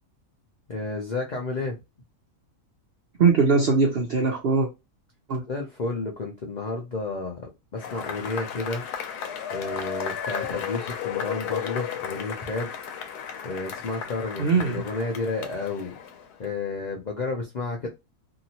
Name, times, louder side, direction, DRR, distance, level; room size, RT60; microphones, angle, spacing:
voice 1, 0.7-1.8 5.5-8.8 9.5-12.7 13.4-16.0 16.4-17.9, left 3 dB, 65° left, 0.4 m, -31 dB
voice 2, 3.2-4.7 5.3-5.4 14.4-14.8, right 4 dB, 70° right, 0.5 m, -21 dB
Cheering / Applause / Crowd, 7.8-16.4, left 8 dB, 85° left, 1.2 m, -34 dB
2.8 x 2.5 x 2.8 m
omnidirectional pair, 1.6 m